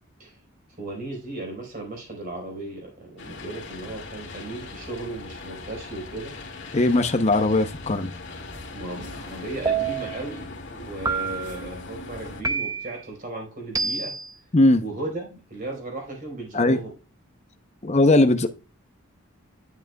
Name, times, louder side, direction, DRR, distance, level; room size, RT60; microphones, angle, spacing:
voice 1, 0.8-6.3 8.7-10.5 10.7-14.2 14.8-17.0, right 2 dB, 40° right, 4.2 m, -36 dB
sound 1, 3.2-12.4, left 3 dB, 60° left, 2.2 m, -39 dB
voice 2, 6.7-8.1 14.5-14.8 16.5-16.8 17.8-18.5, left 2 dB, 30° left, 0.7 m, -19 dB
sound 2, 9.7-10.2 11.1-11.6 12.4-13.0 13.7-14.3, right 5 dB, 15° right, 0.5 m, -27 dB
10.5 x 7.4 x 2.3 m
head